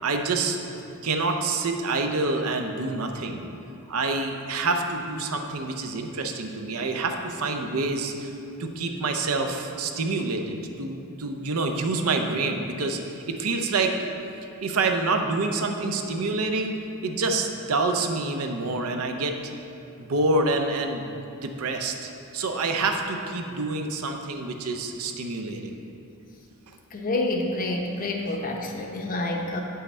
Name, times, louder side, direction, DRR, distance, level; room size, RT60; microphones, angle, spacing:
voice 1, 0.0-3.5 3.9-8.3 8.6-13.9 14.6-19.3 20.0-21.1 21.4-25.7, right 3 dB, 70° right, 4 dB, 0.6 m, -27 dB
voice 2, 26.9-29.6, left 2 dB, 40° left, 1 dB, 0.7 m, -28 dB
8.1 x 5.6 x 4.3 m, 2.7 s
head